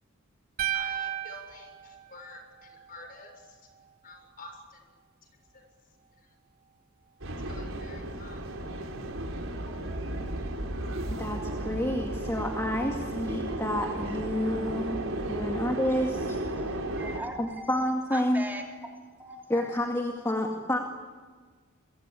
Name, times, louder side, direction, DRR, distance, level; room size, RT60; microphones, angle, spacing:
sound 1, 0.6-2.8, right 12 dB, 45° right, 1.7 m, -34 dB
voice 1, 0.7-3.6 4.0-4.8 5.5-5.7 6.2-6.3 7.5-8.4, left 2 dB, 45° left, 5 dB, 7.0 m, -48 dB
sound 2, 7.2-17.2, right 1 dB, 80° right, 4.4 m, -34 dB
voice 2, 11.1-15.0 15.3-16.4 17.4-18.5 19.5-20.8, left 1 dB, 15° left, 1 dB, 2.2 m, -29 dB
voice 3, 16.6-17.6 18.1-18.6 19.2-19.7, right 1 dB, 10° right, 0 dB, 3.1 m, -40 dB
29.5 x 23.5 x 8.4 m, 1.5 s
head